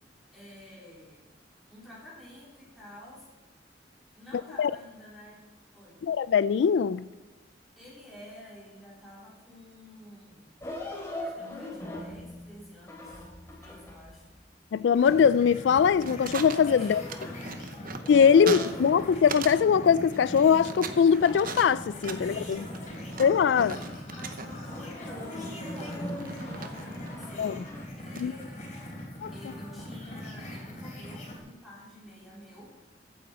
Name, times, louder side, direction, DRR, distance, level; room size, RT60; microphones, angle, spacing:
voice 1, 0.3-1.3 1.7-3.3 4.2-5.4 5.7-6.0 7.8-10.6 11.2-14.3 16.7-17.6 18.5-18.7 22.1-27.6 28.0-28.6 29.3-32.7, left 1 dB, ahead, 3.4 m, -50 dB
voice 2, 6.0-7.0 14.7-17.0 18.1-22.6 23.2-23.7 27.4-27.6 28.2-28.3 29.2-29.3, left 7 dB, 75° left, 0.3 m, -22 dB
sound 1, 10.6-14.1 14.9-17.6 17.9-19.2 19.5-21.3 21.6-24.0 24.5-27.8, left 1 dB, 15° left, 3.0 m, -42 dB
sound 2, 14.9-31.4, left 1 dB, 40° left, 3.8 m, -42 dB
sound 3, 15.7-19.6 19.9-24.7 25.7-27.3 28.2-28.4, right 5 dB, 50° right, 0.9 m, -39 dB
15.0 x 9.4 x 4.3 m
head